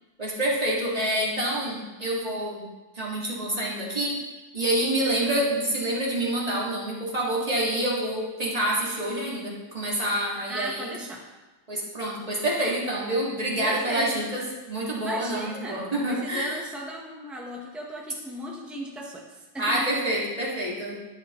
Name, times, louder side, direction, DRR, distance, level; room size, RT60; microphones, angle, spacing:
voice 1, 0.2-2.6 2.9-4.2 4.5-10.9 11.7-14.4 14.7-16.6 19.6-21.0, right 1 dB, 20° right, -5 dB, 2.0 m, -27 dB
voice 2, 10.5-11.2 13.6-14.3 15.0-20.3, right 1 dB, ahead, -2 dB, 0.4 m, -37 dB
11.0 x 10.5 x 3.1 m, 1.2 s
omnidirectional pair, 2.1 m